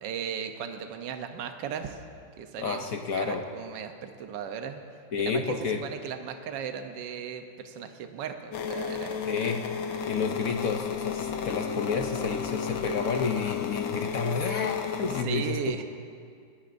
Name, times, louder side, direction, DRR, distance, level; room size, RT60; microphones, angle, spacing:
voice 1, 0.0-2.0 2.4-2.8 3.1-4.8 5.2-9.2 10.0-10.2 15.1-15.8, right 7 dB, 70° right, 7 dB, 1.4 m, -36 dB
voice 2, 2.6-3.4 5.1-5.8 9.2-9.6 10.1-15.6, left 5 dB, 60° left, 4 dB, 0.9 m, -30 dB
sound 1, 8.5-15.2, left 7 dB, 85° left, 1.6 m, -33 dB
19.0 x 18.0 x 2.6 m, 2.2 s
omnidirectional pair, 2.1 m